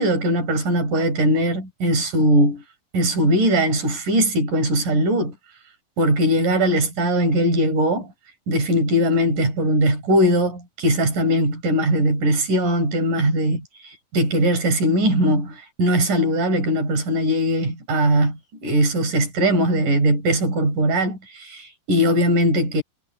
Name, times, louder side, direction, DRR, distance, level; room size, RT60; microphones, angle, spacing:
voice 1, 0.0-2.6 2.9-5.3 6.0-8.1 8.5-13.6 14.1-22.8, equal, 60° right, 6.8 m, -20 dB
omnidirectional pair, 4.2 m